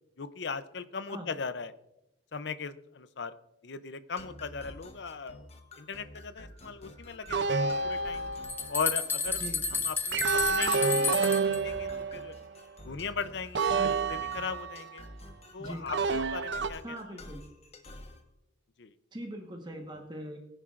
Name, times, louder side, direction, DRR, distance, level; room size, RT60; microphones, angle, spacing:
voice 1, 0.2-1.7 2.3-3.3 3.6-5.5 5.8-8.3 8.7-9.5 9.7-12.4 12.8-15.0 15.5-17.0 18.8-18.9, left 5 dB, 60° left, 13 dB, 0.6 m, -38 dB
sound 1, 4.2-18.2, left 1 dB, 35° left, 1.1 m, -49 dB
sound 2, 7.3-8.7 10.1-12.5 13.6-15.0 15.9-16.7, right 4 dB, 60° right, 0.5 m, -29 dB
sound 3, 8.1-8.2 8.4-11.6, left 4 dB, 10° left, 0.8 m, -31 dB
voice 2, 16.8-17.4 19.1-20.4, equal, 25° right, 2 dB, 1.2 m, -41 dB
20.5 x 10.0 x 2.5 m, 0.90 s
head